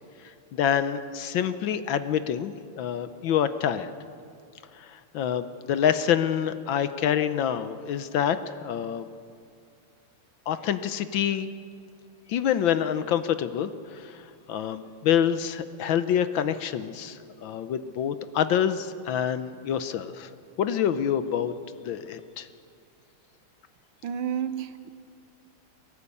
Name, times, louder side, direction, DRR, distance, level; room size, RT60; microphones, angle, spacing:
voice 1, 0.5-3.9 4.8-9.1 10.5-11.5 12.3-20.3 20.6-21.5 21.8-22.5, left 9 dB, 70° left, 12 dB, 1.4 m, -27 dB
voice 2, 24.0-24.9, right 8 dB, 80° right, 11 dB, 1.8 m, -31 dB
22.0 x 18.0 x 8.5 m, 2.4 s
omnidirectional pair, 2.4 m